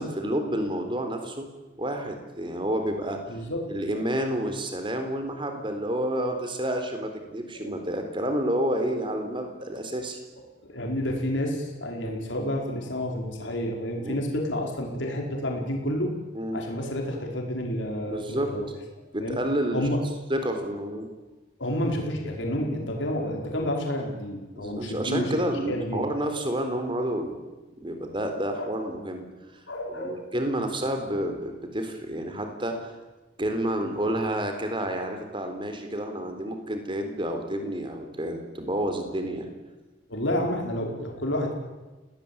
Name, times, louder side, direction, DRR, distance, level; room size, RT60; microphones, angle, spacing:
voice 1, 0.0-1.5 1.8-3.4 3.7-10.2 12.0-12.3 14.0-14.2 16.3-16.6 18.1-18.5 19.1-19.9 20.3-21.1 24.6-27.4 27.8-29.3 29.9-32.9 33.4-39.5, right 1 dB, 25° right, 6 dB, 3.9 m, -29 dB
voice 2, 3.3-3.6 3.9-4.0 7.5-7.7 10.6-16.1 16.5-18.7 19.2-19.4 19.7-20.0 21.6-25.4 25.7-26.0 28.6-28.7 29.7-30.3 40.1-41.5, left 1 dB, 80° left, 1 dB, 5.1 m, -30 dB
29.5 x 18.5 x 8.8 m, 1.2 s
head